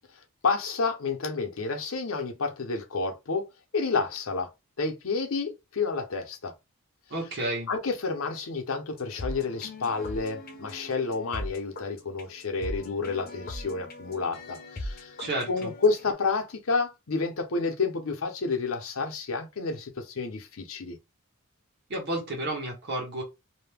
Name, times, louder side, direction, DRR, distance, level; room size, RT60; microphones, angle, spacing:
voice 1, 0.4-3.5 3.7-4.5 4.8-6.5 7.7-15.1 15.5-21.0, left 4 dB, 75° left, 0.7 m, -30 dB
voice 2, 7.1-7.7 15.2-15.7 21.9-23.2, right 1 dB, 50° right, 1.1 m, -31 dB
sound 1, 8.9-16.1, left 1 dB, 45° left, 0.6 m, -40 dB
2.6 x 2.1 x 3.3 m
head